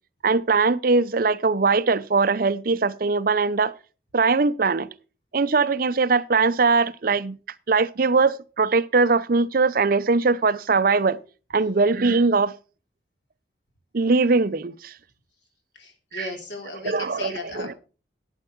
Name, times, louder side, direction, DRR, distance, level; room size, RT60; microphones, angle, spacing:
voice 1, 0.2-3.7 4.1-4.9 5.3-7.4 7.7-11.2 11.5-12.5 13.9-14.9 16.1-16.2 16.9-17.3, right 4 dB, 50° right, 0.6 m, -21 dB
voice 2, 15.7-17.8, left 2 dB, 80° left, 3.4 m, -36 dB
11.5 x 8.9 x 4.5 m
head